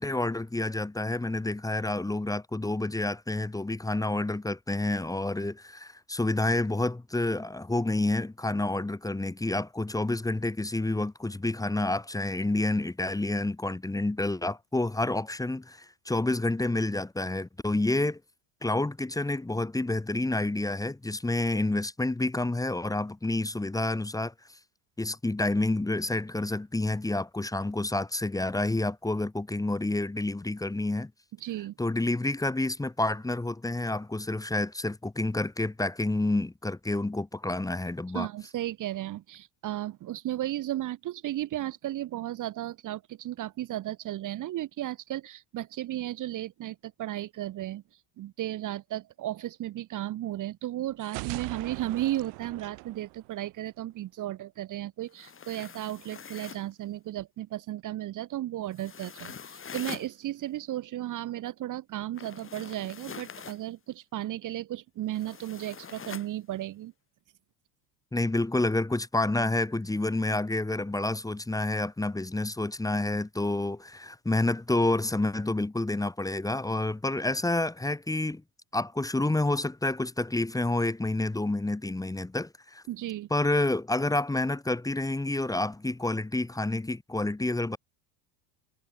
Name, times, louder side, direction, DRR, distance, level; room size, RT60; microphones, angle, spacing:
voice 1, 0.0-18.2 18.6-24.3 25.0-31.1 31.8-38.3 68.1-78.4 78.7-82.8 83.3-87.8, left 2 dB, 10° left, 1.4 m, -29 dB
voice 2, 31.4-31.7 38.1-47.8 48.2-66.9 82.9-83.3, right 14 dB, 45° right, 1.1 m, -34 dB
sound 1, 51.0-53.9, right 36 dB, 75° right, 2.8 m, -40 dB
sound 2, 55.1-56.7 58.7-60.1 62.1-63.6 65.1-66.3, left 6 dB, 30° left, 3.5 m, -44 dB
supercardioid pair, 100°, 44 cm